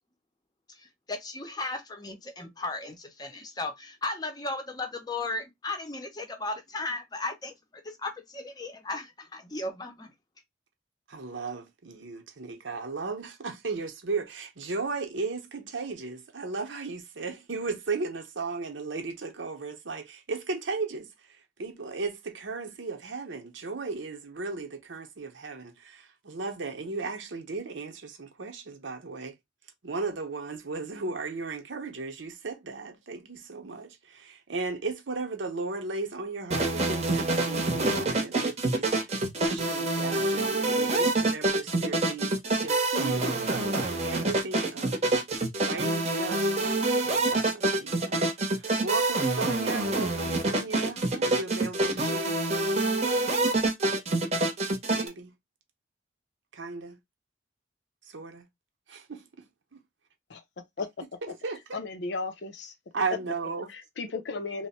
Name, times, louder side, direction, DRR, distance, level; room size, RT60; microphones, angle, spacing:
voice 1, 0.8-10.1, left 2 dB, 20° left, 0.6 m, -36 dB
voice 2, 11.1-29.4 29.8-45.0 45.6-52.4 54.9-55.4 56.5-57.0 58.0-58.5 58.9-59.8 61.2-61.8 62.9-63.7, right 4 dB, 80° right, 0.8 m, -36 dB
sound 1, 36.5-55.1, right 2 dB, 35° right, 0.8 m, -26 dB
voice 3, 61.7-62.7 63.7-64.7, left 3 dB, 65° left, 0.5 m, -35 dB
3.0 x 2.1 x 4.2 m
head